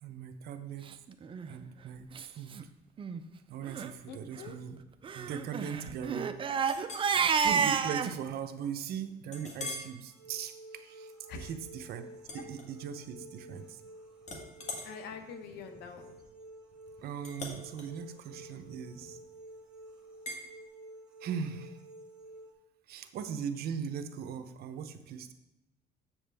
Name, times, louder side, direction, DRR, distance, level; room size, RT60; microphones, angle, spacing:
voice 1, 0.0-0.9 1.5-2.1 2.3-2.5 3.5-4.8 5.1-6.3 7.3-12.0 12.3-13.8 17.0-19.2 21.2-21.8 22.9-25.3, right 7 dB, 70° right, 8 dB, 0.7 m, -39 dB
Crying sobbing, 1.2-1.5 2.2-2.3 2.5-2.6 3.0-3.2 3.6-3.9 5.0-8.1, right 6 dB, 30° right, 0.5 m, -30 dB
voice 2, 4.1-4.6 11.3-11.5 12.3-12.5 14.8-16.1, left 6 dB, 85° left, 7 dB, 1.0 m, -45 dB
Chink clink, 6.6-7.1 7.6-7.8 8.3-8.4 9.3-10.0 10.5-10.7 12.2-13.2 13.5-13.9 14.2-19.3 20.3-20.5, left 2 dB, 45° left, 1.5 m, -44 dB
sound 1, 10.1-22.5, right 1 dB, 5° right, 2.2 m, -51 dB
7.5 x 7.1 x 3.5 m, 0.97 s
cardioid pair, 110°, 17 cm